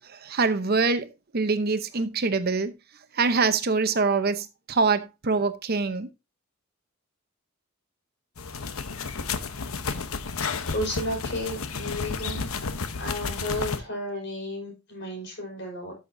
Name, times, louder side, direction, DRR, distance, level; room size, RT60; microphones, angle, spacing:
voice 1, 0.2-2.7 3.2-6.1, right 4 dB, 45° right, 0.8 m, -24 dB
sound 1, 8.4-13.8, left 4 dB, 85° left, 0.9 m, -32 dB
voice 2, 10.7-12.5 12.9-16.0, left 1 dB, 55° left, 5.5 m, -33 dB
13.0 x 6.6 x 2.7 m
head